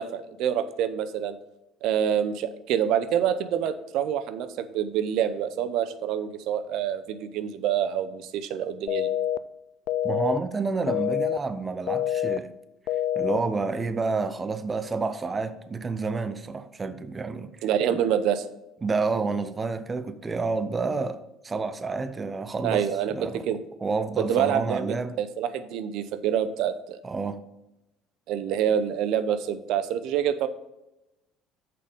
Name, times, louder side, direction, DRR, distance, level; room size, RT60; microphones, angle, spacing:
voice 1, 0.0-1.4 1.8-9.1 17.6-18.5 22.6-23.1 23.5-23.6 24.2-27.0 28.3-30.5, right 9 dB, 70° right, 0.6 m, -26 dB
sound 1, 8.9-9.4 9.9-10.4 10.9-11.4 11.9-12.4 12.9-13.4, left 11 dB, 65° left, 0.3 m, -26 dB
voice 2, 10.0-12.5 13.2-17.7 18.8-21.2 21.4-25.2 27.0-27.4, right 4 dB, 25° right, 0.5 m, -29 dB
6.7 x 5.2 x 5.1 m
cardioid pair, 115°, 0 cm